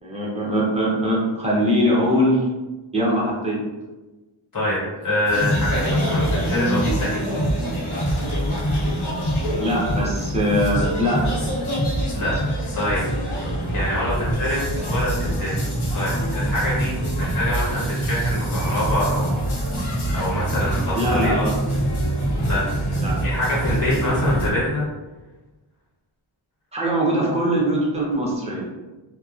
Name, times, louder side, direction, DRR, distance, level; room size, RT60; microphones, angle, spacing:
voice 1, 0.0-2.4 2.9-3.6 9.6-11.2 20.9-21.5 23.0-23.2 26.7-28.7, equal, 15° right, -4 dB, 0.6 m, -21 dB
voice 2, 4.5-7.2 12.1-12.3 12.7-13.0 13.7-15.5 15.9-19.3 20.1-21.5 22.4-22.6 22.9-24.8, left 1 dB, 40° left, -7 dB, 1.1 m, -25 dB
sound 1, 5.3-24.5, right 1 dB, 90° left, 0.9 m, -24 dB
2.8 x 2.0 x 2.3 m, 1.2 s
wide cardioid pair, 150°, 49 cm